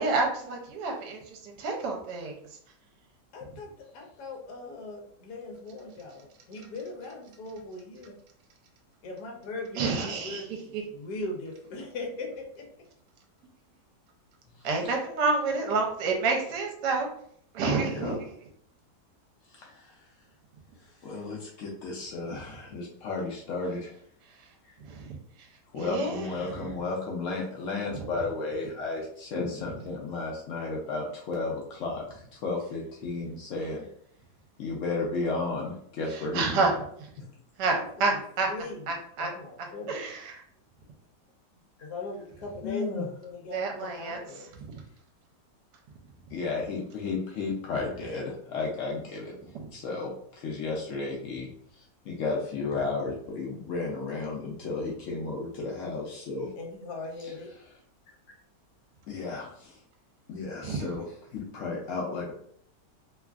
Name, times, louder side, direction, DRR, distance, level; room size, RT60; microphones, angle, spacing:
voice 1, 0.0-2.4 9.7-10.4 10.7-10.8 14.6-17.1 17.5-18.2 24.9-25.0 25.7-26.3 36.3-36.7 37.6-37.7 38.0-38.5 38.9-39.3 39.9-40.4 43.5-44.2 60.6-60.8, right 4 dB, 80° right, 2 dB, 1.2 m, -28 dB
voice 2, 3.3-8.1 9.0-12.7 37.7-38.2 38.5-38.9 39.2-40.1 41.8-44.5 56.6-57.5, left 2 dB, 70° left, 0 dB, 1.2 m, -39 dB
voice 3, 14.5-14.9 17.8-18.2 19.5-20.0 20.8-24.0 24.6-24.8 25.7-33.9 34.6-36.7 37.2-37.3 42.6-43.1 46.3-49.3 49.7-56.5 57.2-57.3 59.1-59.8 60.3-62.3, left 3 dB, 90° left, -2 dB, 0.6 m, -33 dB
3.0 x 2.4 x 2.3 m, 0.65 s
omnidirectional pair, 1.9 m